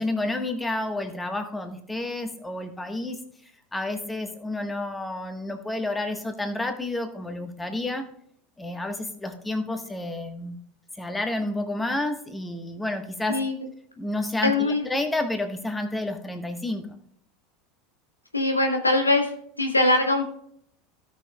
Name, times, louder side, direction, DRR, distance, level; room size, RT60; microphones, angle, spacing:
voice 1, 0.0-3.2 3.7-8.0 8.6-10.6 11.0-13.4 14.0-17.0, left 2 dB, 10° left, 6 dB, 1.3 m, -30 dB
voice 2, 14.4-14.9 18.3-19.3 19.6-20.3, left 2 dB, 90° left, 3 dB, 1.2 m, -22 dB
16.5 x 6.1 x 2.3 m, 0.66 s
figure-of-eight pair, 75°, 0 cm